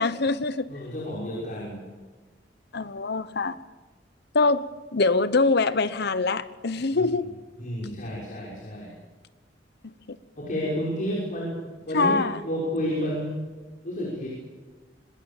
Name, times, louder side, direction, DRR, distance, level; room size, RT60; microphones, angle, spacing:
voice 1, 0.0-0.7 2.7-3.6 4.3-7.3 10.1-10.2 11.9-12.4, left 3 dB, 60° left, 0.9 m, -24 dB
voice 2, 0.7-1.8 6.9-7.0 7.6-8.9 10.4-13.4 13.8-14.3, equal, 45° left, 6.3 m, -31 dB
26.0 x 19.5 x 7.3 m
head